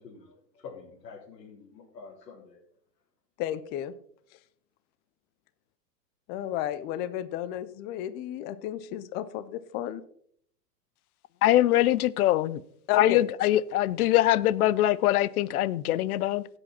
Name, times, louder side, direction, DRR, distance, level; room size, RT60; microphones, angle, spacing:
voice 1, 0.0-2.6, left 5 dB, 80° left, -6 dB, 4.2 m, -47 dB
voice 2, 3.4-3.9 6.3-10.0 12.9-13.2, left 12 dB, 20° left, 15 dB, 0.5 m, -32 dB
voice 3, 11.4-12.6 12.9-16.5, left 14 dB, 65° left, 20 dB, 0.8 m, -23 dB
16.5 x 8.0 x 4.3 m, 0.65 s
hypercardioid pair, 130°, 49 cm